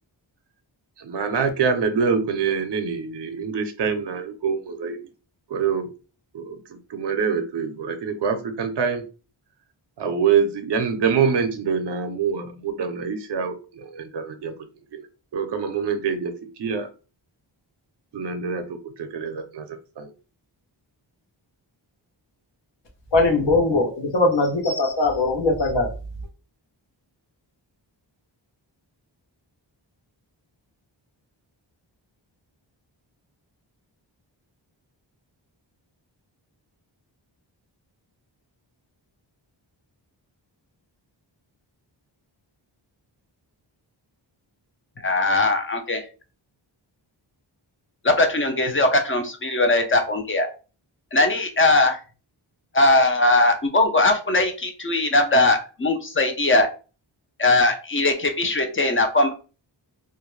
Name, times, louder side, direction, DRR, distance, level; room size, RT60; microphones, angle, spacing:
voice 1, 1.0-5.0 5.5-5.9 6.3-9.0 10.0-14.5 14.9-15.1 15.3-16.3 16.6-16.9 18.1-18.7 19.0-19.7 20.0-20.1, right 6 dB, 60° right, 7 dB, 0.6 m, -25 dB
voice 2, 23.1-25.9, left 2 dB, 65° left, 2 dB, 0.8 m, -20 dB
voice 3, 45.0-46.0 48.0-50.5 51.1-52.0 52.7-56.7 57.4-59.3, left 2 dB, 30° left, 6 dB, 0.4 m, -20 dB
2.4 x 2.1 x 3.0 m, 0.34 s
wide cardioid pair, 90°, 46 cm